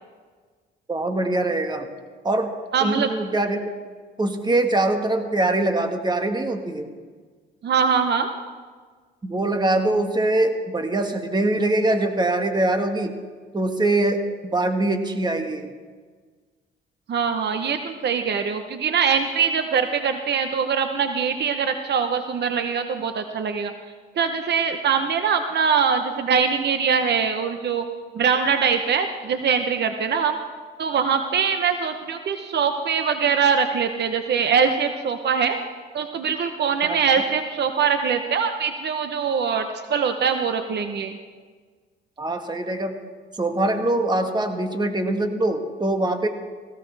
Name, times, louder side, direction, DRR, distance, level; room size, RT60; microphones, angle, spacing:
voice 1, 0.9-1.9 2.2-2.5 2.8-3.7 4.2-6.9 9.2-13.1 13.5-15.7 36.8-37.0 42.2-42.9 43.4-46.3, right 2 dB, 20° right, 5 dB, 1.5 m, -23 dB
voice 2, 2.7-3.1 7.6-8.3 17.1-23.7 24.2-27.8 28.1-30.4 30.8-35.6 35.9-41.2, right 6 dB, 60° right, 7 dB, 0.9 m, -22 dB
17.5 x 16.5 x 3.4 m, 1.5 s
cardioid pair, 90°, 20 cm